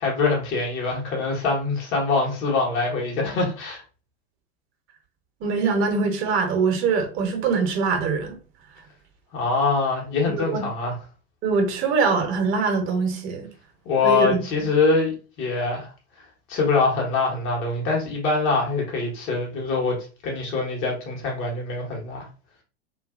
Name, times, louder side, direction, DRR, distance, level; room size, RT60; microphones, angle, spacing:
voice 1, 0.0-3.8 9.3-11.0 13.8-15.1 15.4-15.9 16.5-22.3, left 4 dB, 40° left, -2 dB, 1.2 m, -24 dB
voice 2, 5.4-8.4 10.2-10.6 11.4-13.5 14.0-14.3, right 4 dB, 40° right, 4 dB, 0.9 m, -23 dB
2.7 x 2.5 x 2.4 m, 0.36 s
hypercardioid pair, 90°, 32 cm